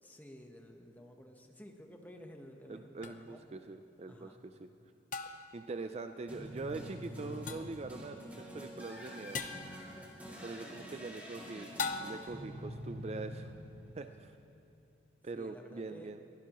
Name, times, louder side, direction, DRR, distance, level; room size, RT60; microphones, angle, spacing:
voice 1, 0.0-3.4 4.1-4.4 9.8-10.3 15.3-16.1, equal, 10° left, 3 dB, 1.0 m, -53 dB
voice 2, 2.7-4.7 5.5-9.4 10.4-11.7 12.0-13.5 14.0-14.3 15.2-16.2, right 3 dB, 35° right, 8 dB, 0.4 m, -43 dB
sound 1, 3.0-3.1 5.1-5.6 7.5-7.8 9.3-9.7 11.8-12.4, left 4 dB, 45° left, 0.7 m, -39 dB
sound 2, 6.3-14.5, equal, 10° right, 2.5 m, -46 dB
23.0 x 16.0 x 3.0 m, 2.7 s
head